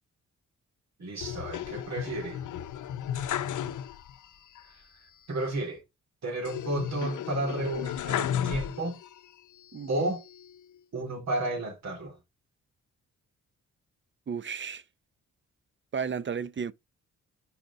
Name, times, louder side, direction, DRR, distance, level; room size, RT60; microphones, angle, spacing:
voice 1, 1.0-2.4 4.6-4.8 5.3-5.8 6.2-9.0 9.9-10.2 10.9-12.2, right 2 dB, 55° right, 3.3 m, -32 dB
sound 1, 1.2-4.3 4.6-4.7 6.5-9.2 9.7-10.6, left 10 dB, 70° left, 0.6 m, -34 dB
voice 2, 9.7-10.1 14.3-14.8 15.9-16.7, right 6 dB, 35° right, 0.7 m, -33 dB
5.2 x 5.0 x 4.0 m
cardioid pair, 65°, 32 cm